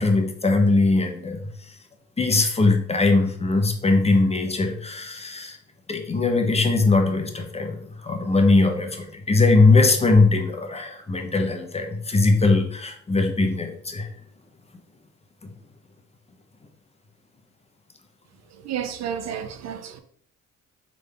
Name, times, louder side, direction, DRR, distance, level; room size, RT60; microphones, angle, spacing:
voice 1, 0.0-1.4 2.2-5.6 5.9-14.1 15.4-15.5, left 3 dB, 20° left, 0.7 m, -20 dB
voice 2, 18.6-20.0, right 8 dB, 60° right, 0.5 m, -31 dB
3.8 x 3.3 x 3.3 m
cardioid pair, 90°, 30 cm